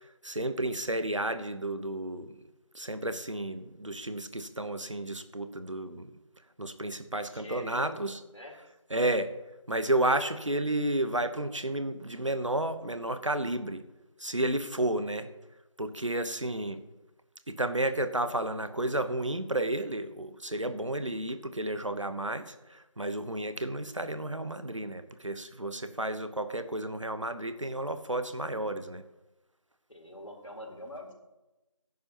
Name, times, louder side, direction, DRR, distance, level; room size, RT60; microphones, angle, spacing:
voice 1, 0.2-2.3 2.7-6.1 6.6-8.2 8.9-9.3 9.7-13.8 14.2-15.3 15.8-16.8 17.5-22.5 23.0-29.0, right 1 dB, 65° right, 10 dB, 1.0 m, -32 dB
voice 2, 7.3-8.0 8.3-8.6 29.9-31.1, left 1 dB, 70° left, 0 dB, 3.9 m, -44 dB
14.5 x 11.0 x 3.0 m, 1.0 s
figure-of-eight pair, 175°, 17 cm